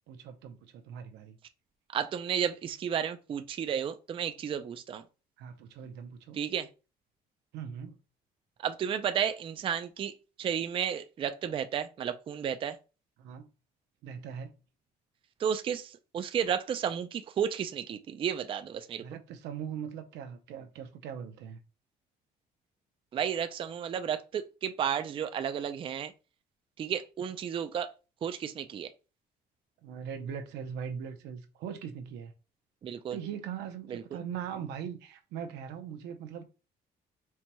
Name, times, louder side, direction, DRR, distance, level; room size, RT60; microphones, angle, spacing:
voice 1, 0.1-1.4 5.4-6.4 7.5-8.0 13.2-13.5 14.0-14.5 19.0-21.6 29.8-32.3 33.1-36.4, right 8 dB, 85° right, 0.7 m, -40 dB
voice 2, 1.9-5.0 6.3-6.7 8.6-10.1 10.4-12.8 15.4-19.0 23.1-26.1 26.8-27.9 28.2-28.9 32.8-33.2 33.9-34.0, right 8 dB, 30° right, 0.3 m, -32 dB
4.4 x 2.8 x 2.2 m
cardioid pair, 110°, 17 cm